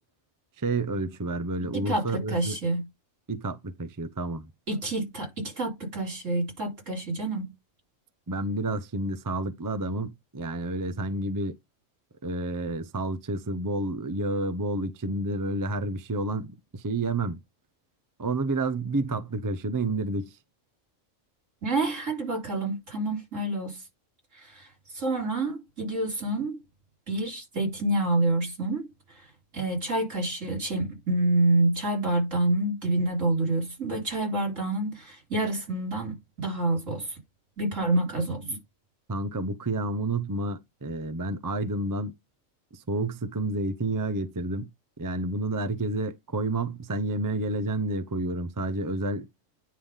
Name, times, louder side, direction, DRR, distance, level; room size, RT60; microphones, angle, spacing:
voice 1, 0.6-2.6 3.3-4.5 8.3-11.6 12.2-17.4 18.2-20.4 39.1-42.1 42.7-44.7 45.0-49.3, right 2 dB, 20° right, 0.5 m, -30 dB
voice 2, 1.7-2.9 4.7-7.5 21.6-23.8 24.4-24.7 24.9-26.6 27.1-29.2 29.5-37.2 37.6-38.6, right 2 dB, 70° right, 4.2 m, -28 dB
9.7 x 3.4 x 5.6 m
omnidirectional pair, 1.4 m